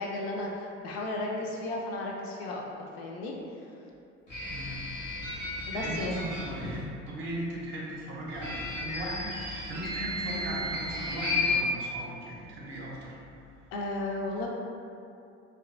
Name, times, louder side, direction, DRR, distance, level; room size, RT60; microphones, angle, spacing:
voice 1, 0.0-2.6 3.0-3.7 5.7-6.2 13.7-14.5, left 2 dB, 55° left, -1 dB, 0.5 m, -34 dB
sound 1, 4.3-6.8 8.3-11.6, left 2 dB, 85° left, 0.9 m, -34 dB
voice 2, 4.5-4.8 5.7-6.8 7.1-13.2, right 1 dB, 35° right, -4 dB, 0.6 m, -37 dB
2.8 x 2.3 x 2.4 m, 2.6 s
figure-of-eight pair, 60°, 36 cm